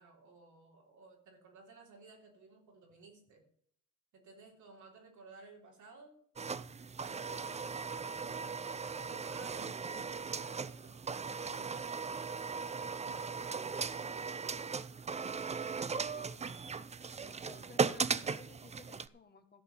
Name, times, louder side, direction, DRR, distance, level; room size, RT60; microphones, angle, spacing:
voice 1, 0.0-3.4 4.1-6.5 7.0-14.0, right 3 dB, 75° right, 1 dB, 3.5 m, -58 dB
sound 1, 6.4-19.1, right 5 dB, 20° right, 0.5 m, -38 dB
voice 2, 7.1-7.5 15.6-16.8 17.2-19.6, left 5 dB, 35° left, 7 dB, 1.7 m, -57 dB
14.0 x 5.2 x 7.9 m, 0.65 s
cardioid pair, 90°, 30 cm